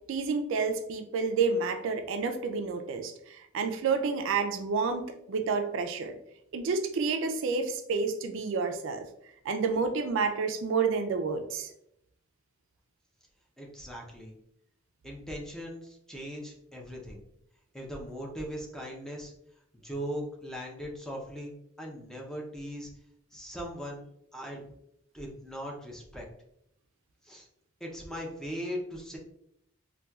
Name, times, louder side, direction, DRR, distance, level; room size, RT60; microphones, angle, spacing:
voice 1, 0.1-6.2 6.5-9.0 9.5-11.7, right 4 dB, 65° right, 6 dB, 0.3 m, -29 dB
voice 2, 13.6-14.4 15.0-17.2 17.7-19.3 19.8-22.9 23.3-24.0 24.3-24.6 25.1-26.3 27.2-27.5 27.8-29.2, equal, 5° left, -1 dB, 0.5 m, -39 dB
4.1 x 2.2 x 2.3 m, 0.75 s
head